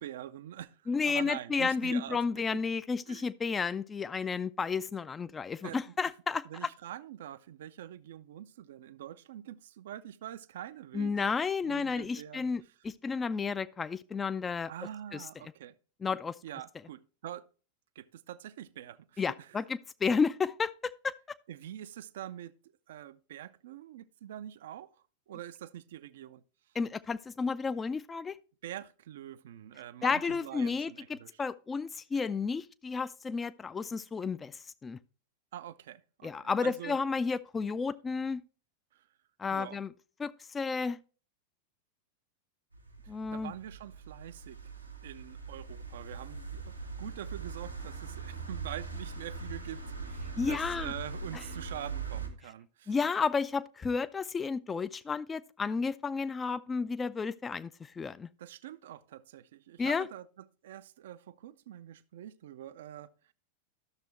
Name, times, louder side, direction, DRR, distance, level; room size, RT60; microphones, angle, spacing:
voice 1, 0.0-2.2 2.5-2.6 3.1-3.3 5.6-5.9 6.4-11.1 11.6-12.5 14.7-15.7 16.4-17.5 18.0-19.6 21.5-22.5 22.9-24.9 25.3-26.4 28.6-31.4 35.5-37.0 38.9-39.0 39.5-39.8 43.0-44.6 45.0-52.9 58.4-63.1, right 11 dB, 60° right, 0.4 m, -45 dB
voice 2, 0.9-6.7 10.9-14.7 15.1-15.2 16.0-16.4 19.2-21.1 26.8-28.4 30.0-35.0 36.2-38.4 39.4-39.9 40.2-41.0 43.1-43.5 50.4-50.9 52.9-58.3 59.8-60.1, left 5 dB, 15° left, 0.3 m, -32 dB
sound 1, 42.7-52.3, right 4 dB, 90° right, 1.3 m, -41 dB
12.0 x 6.6 x 3.0 m
figure-of-eight pair, 90°, 0 cm